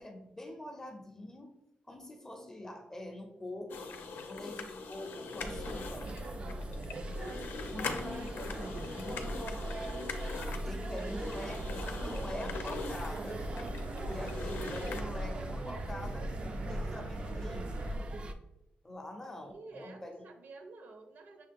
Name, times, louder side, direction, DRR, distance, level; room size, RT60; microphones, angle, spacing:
voice 1, 0.0-1.5 1.9-4.0 4.3-6.1 7.7-9.9 10.5-16.3 16.6-18.0 18.8-20.3, left 1 dB, 15° left, 4 dB, 0.6 m, -45 dB
sound 1, 3.7-15.0, left 4 dB, 85° left, 0.5 m, -42 dB
sound 2, 5.4-18.3, right 1 dB, 35° right, 0.3 m, -40 dB
voice 2, 6.8-7.4 8.0-8.5 19.4-21.5, right 3 dB, 70° right, 6 dB, 0.6 m, -51 dB
sound 3, 11.0-18.0, right 1 dB, 85° right, 1.0 m, -42 dB
6.3 x 2.3 x 3.4 m, 0.84 s
wide cardioid pair, 155°, 3 cm